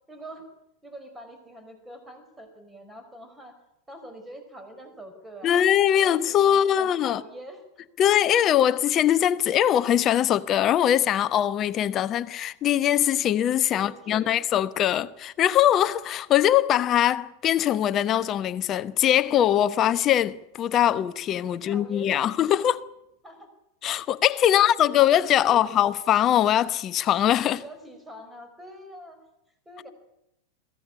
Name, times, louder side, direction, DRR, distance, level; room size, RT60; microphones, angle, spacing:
voice 1, 0.1-0.5 0.8-3.6 3.9-5.7 5.9-7.6 13.7-14.3 21.5-22.3 23.2-23.5 24.4-25.0 25.4-25.6 27.5-29.2 29.6-29.9, right 1 dB, 10° right, 4.9 m, -44 dB
voice 2, 5.4-7.2 8.0-22.9 23.8-27.6, left 11 dB, 30° left, 1.0 m, -22 dB
23.0 x 16.0 x 9.9 m
figure-of-eight pair, 90°, 0 cm